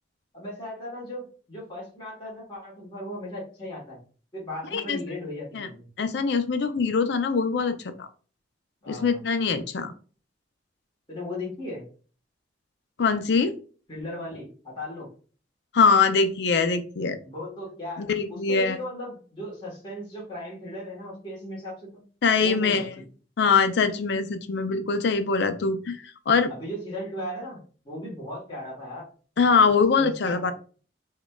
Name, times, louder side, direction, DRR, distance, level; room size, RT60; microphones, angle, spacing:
voice 1, 0.3-4.0 4.3-5.9 8.8-9.2 11.1-11.9 13.9-15.1 17.2-22.0 22.4-22.8 26.5-27.6 27.8-29.0 30.0-30.5, left 1 dB, 25° left, -6 dB, 1.3 m, -37 dB
voice 2, 6.0-8.1 8.9-9.9 13.0-13.5 15.7-17.2 18.0-18.8 22.2-22.9 23.4-26.5 29.4-30.5, left 5 dB, 70° left, 9 dB, 0.5 m, -23 dB
4.8 x 2.2 x 2.3 m, 0.39 s
head